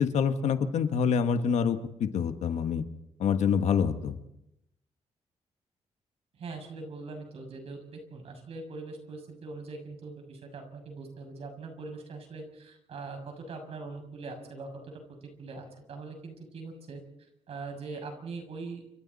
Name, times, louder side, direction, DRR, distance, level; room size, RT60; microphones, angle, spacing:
voice 1, 0.0-2.8 3.2-4.2, left 7 dB, 80° left, 8 dB, 1.6 m, -26 dB
voice 2, 6.3-17.0 17.5-18.8, right 3 dB, 60° right, 4 dB, 6.7 m, -42 dB
29.0 x 26.5 x 4.2 m, 0.84 s
wide cardioid pair, 160°, 11 cm